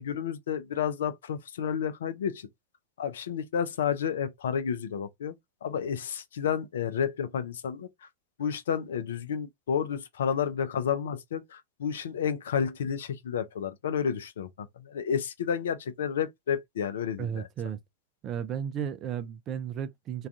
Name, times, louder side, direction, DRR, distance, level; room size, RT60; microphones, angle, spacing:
voice 1, 0.0-2.5 3.0-5.3 5.6-7.9 8.4-17.5, left 7 dB, 60° left, 0.4 m, -31 dB
voice 2, 17.2-17.8 18.2-20.3, right 8 dB, 30° right, 0.4 m, -34 dB
2.4 x 2.2 x 2.4 m
figure-of-eight pair, 90°, 0 cm